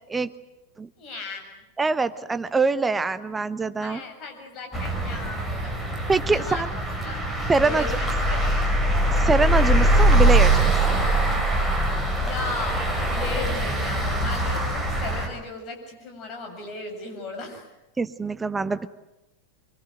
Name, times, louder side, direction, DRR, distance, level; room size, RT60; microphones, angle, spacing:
voice 1, 1.0-1.6 3.8-5.7 6.3-7.2 7.6-8.6 12.2-17.7, left 3 dB, 35° left, 4 dB, 7.6 m, -36 dB
voice 2, 1.8-4.0 6.1-6.7 7.5-7.9 9.1-10.6 10.9-11.0 18.0-18.9, right 4 dB, 10° right, 13 dB, 1.1 m, -24 dB
sound 1, 4.7-15.3, right 1 dB, 5° left, 6.3 m, -22 dB
25.0 x 24.0 x 9.2 m, 0.94 s
figure-of-eight pair, 90°, 0 cm